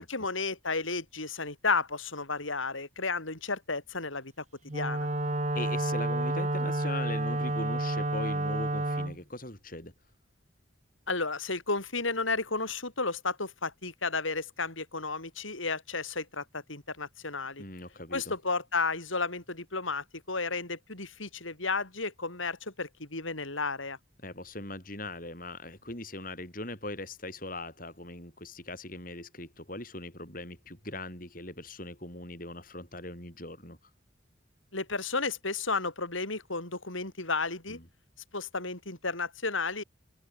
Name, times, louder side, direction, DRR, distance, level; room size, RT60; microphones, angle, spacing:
voice 1, 0.0-4.3 4.7-5.1 11.1-17.6 18.1-24.0 34.7-37.8 38.3-39.8, left 3 dB, 85° left, 6.3 m, -33 dB
Wind instrument woodwind instrument, 4.7-9.2, right 1 dB, 35° right, 2.3 m, -30 dB
voice 2, 5.5-9.9 17.6-18.3 24.2-33.8 37.7-37.9, left 2 dB, 45° left, 7.8 m, -40 dB
head